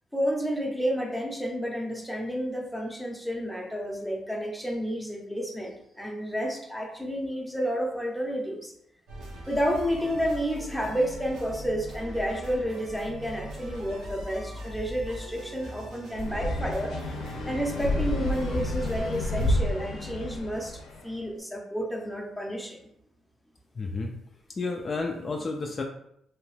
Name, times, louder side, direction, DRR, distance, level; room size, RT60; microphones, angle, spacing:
voice 1, 0.1-8.7 9.5-16.9 17.4-22.9, equal, ahead, 0 dB, 0.6 m, -30 dB
sound 1, 9.1-19.6, equal, 85° right, 0.8 m, -41 dB
sound 2, 16.2-21.0, left 1 dB, 80° left, 0.6 m, -30 dB
voice 2, 23.8-24.2 24.5-25.8, left 3 dB, 35° left, 2 dB, 0.3 m, -31 dB
2.8 x 2.2 x 3.2 m, 0.74 s
cardioid pair, 90°, 0 cm